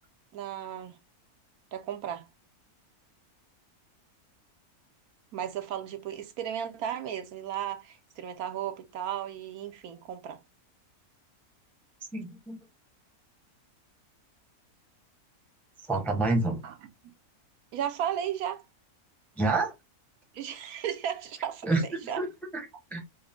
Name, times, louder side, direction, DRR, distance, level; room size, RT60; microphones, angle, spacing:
voice 1, 0.3-1.0 1.7-2.3 5.3-10.4 16.6-16.7 17.7-18.6 20.3-22.3, right 10 dB, 75° right, 1.1 m, -35 dB
voice 2, 12.1-12.6 15.9-16.6 19.4-19.7 21.6-21.8 22.2-22.3 22.5-22.6 22.9-23.0, right 3 dB, ahead, 0.7 m, -27 dB
4.7 x 2.1 x 3.5 m
omnidirectional pair, 1.6 m